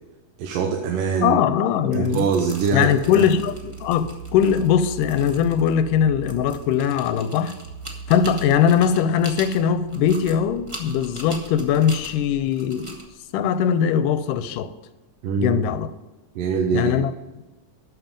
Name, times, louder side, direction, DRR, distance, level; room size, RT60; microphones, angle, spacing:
voice 1, 0.4-1.4 1.9-3.3 15.2-15.6 16.4-16.9, right 5 dB, 85° right, 2.6 m, -23 dB
voice 2, 1.2-2.3 2.7-7.6 8.1-13.0 13.3-14.7 15.4-15.9 16.7-17.1, left 8 dB, 90° left, 2.2 m, -20 dB
sound 1, 1.8-14.5, right 1 dB, 35° right, 0.4 m, -42 dB
sound 2, 2.9-12.4, right 4 dB, 65° right, 2.1 m, -39 dB
12.5 x 7.6 x 5.3 m
omnidirectional pair, 3.8 m